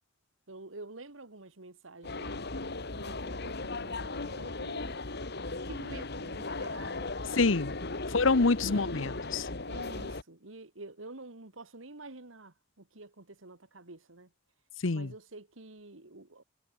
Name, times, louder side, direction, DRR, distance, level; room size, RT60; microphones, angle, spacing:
voice 1, 0.5-2.4 2.9-4.9 5.7-7.1 8.6-9.1 9.7-14.3 14.9-16.4, right 2 dB, 80° right, 2.4 m, -48 dB
sound 1, 2.0-10.2, left 3 dB, 55° left, 2.4 m, -37 dB
voice 2, 7.4-7.7 8.1-9.4 14.8-15.1, left 3 dB, 75° left, 1.0 m, -26 dB
head